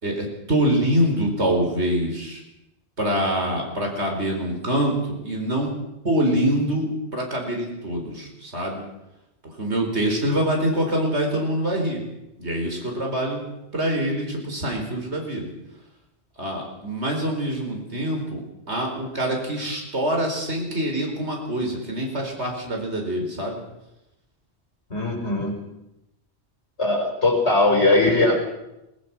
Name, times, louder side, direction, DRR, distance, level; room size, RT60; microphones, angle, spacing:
voice 1, 0.0-2.4 3.0-5.7 6.0-8.8 9.4-12.0 12.4-13.4 13.7-15.5 16.4-18.4 18.7-23.6, right 1 dB, 90° right, 1 dB, 5.0 m, -25 dB
voice 2, 24.9-25.6 26.8-28.4, left 2 dB, 85° left, 1 dB, 5.4 m, -20 dB
21.0 x 20.5 x 6.2 m, 0.91 s
omnidirectional pair, 1.1 m